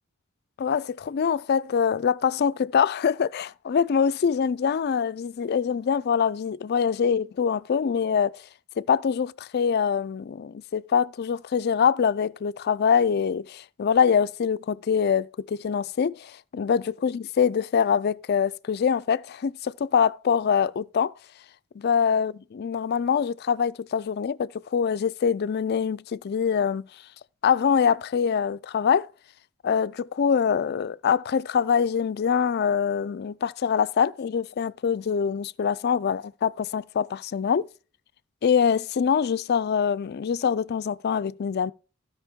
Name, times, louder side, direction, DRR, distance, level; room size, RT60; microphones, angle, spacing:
voice 1, 0.6-8.4 8.8-21.1 21.8-26.9 27.4-29.1 29.6-37.7 38.4-41.7, left 7 dB, 50° left, 0.4 m, -24 dB
15.5 x 5.2 x 3.6 m
head